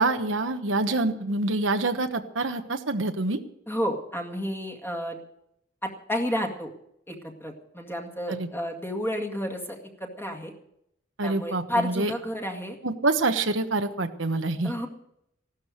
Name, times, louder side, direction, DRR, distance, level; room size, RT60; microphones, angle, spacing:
voice 1, 0.0-3.4 8.3-8.5 11.2-12.1 12.8-14.7, right 2 dB, 80° right, 7 dB, 1.2 m, -26 dB
voice 2, 3.7-5.2 5.8-6.7 7.1-10.5 11.2-12.8 14.6-14.9, equal, 10° left, 3 dB, 2.1 m, -31 dB
15.5 x 12.5 x 6.5 m, 0.77 s
head